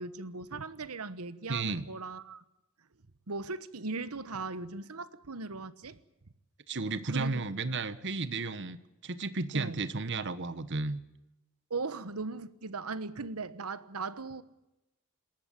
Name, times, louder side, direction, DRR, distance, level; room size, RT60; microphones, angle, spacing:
voice 1, 0.0-2.4 3.3-6.0 7.1-7.4 9.5-9.8 11.7-14.4, right 3 dB, 90° right, 15 dB, 1.3 m, -38 dB
voice 2, 1.5-1.9 6.7-8.8 9.0-11.0, right 3 dB, 55° right, 14 dB, 1.2 m, -33 dB
27.0 x 13.5 x 8.9 m, 0.93 s
head